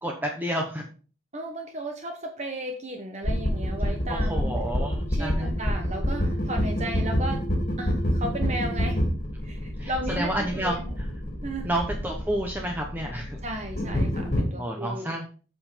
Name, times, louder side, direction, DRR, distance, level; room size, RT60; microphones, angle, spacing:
voice 1, 0.0-0.8 4.1-5.6 9.8-10.8 11.6-13.4 14.6-15.3, right 1 dB, 10° right, 1 dB, 0.9 m, -30 dB
voice 2, 1.3-4.5 5.1-7.4 7.8-9.0 9.4-10.9 11.4-11.7 13.4-15.1, right 1 dB, 35° right, 3 dB, 1.1 m, -35 dB
sound 1, 3.2-14.4, equal, 40° left, 2.5 m, -27 dB
7.9 x 5.4 x 5.1 m, 0.39 s
head